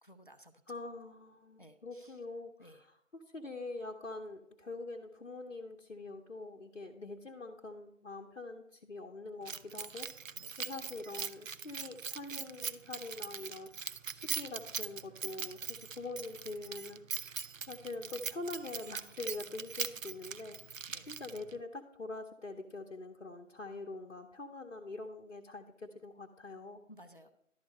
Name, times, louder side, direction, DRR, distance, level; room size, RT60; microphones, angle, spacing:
voice 1, 0.0-0.5 1.6-2.1 2.6-2.8 10.4-10.5 20.9-21.1 26.9-27.3, equal, 40° left, 7 dB, 0.5 m, -56 dB
voice 2, 0.7-10.1 10.6-13.7 14.1-17.4 17.7-20.6 21.1-26.8, left 2 dB, 60° left, 2 dB, 0.8 m, -44 dB
Keys jangling, 9.5-21.6, right 6 dB, 80° right, 0.5 m, -41 dB
11.5 x 4.5 x 5.1 m, 0.73 s
figure-of-eight pair, 160°, 39 cm